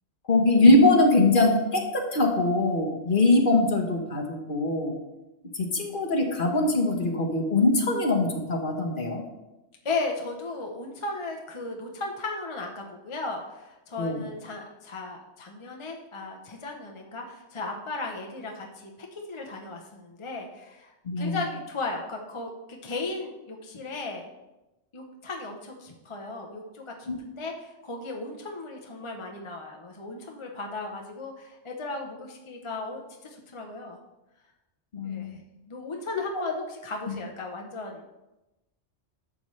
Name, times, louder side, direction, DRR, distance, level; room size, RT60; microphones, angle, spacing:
voice 1, 0.3-4.9 5.5-9.2 14.0-14.2 21.0-21.4 27.1-27.2 34.9-35.4, left 2 dB, 45° left, 3 dB, 1.2 m, -22 dB
voice 2, 9.8-24.3 24.9-34.0 35.0-35.4 35.7-38.0, left 3 dB, 30° left, 1 dB, 0.8 m, -36 dB
11.0 x 6.9 x 3.2 m, 1.0 s
omnidirectional pair, 1.2 m